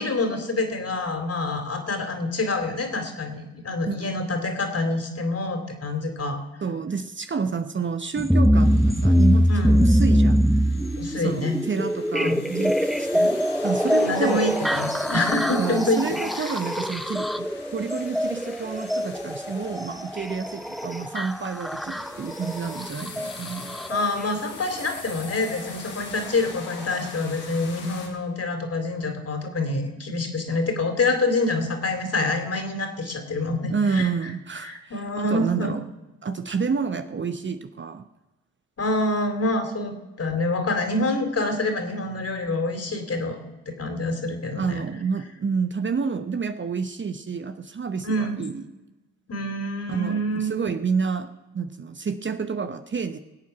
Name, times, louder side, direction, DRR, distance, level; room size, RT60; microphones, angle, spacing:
voice 1, 0.0-6.4 9.5-9.8 11.0-11.6 12.2-12.4 14.0-16.2 23.9-34.1 34.6-35.7 38.8-43.4 43.6-44.8 48.0-48.4 49.3-50.5, left 2 dB, 40° left, 6 dB, 3.5 m, -26 dB
voice 2, 6.6-10.4 11.2-14.5 15.5-23.8 33.7-35.9 36.2-38.1 44.6-48.7 49.9-53.2, right 5 dB, 30° right, 9 dB, 1.0 m, -29 dB
sound 1, 8.2-24.1 25.3-25.4 26.2-26.3 26.9-27.0, equal, ahead, 0.7 m, -23 dB
sound 2, 8.5-28.1, left 5 dB, 80° left, 2.7 m, -42 dB
21.0 x 8.4 x 5.9 m, 1.1 s
hypercardioid pair, 45°, 38 cm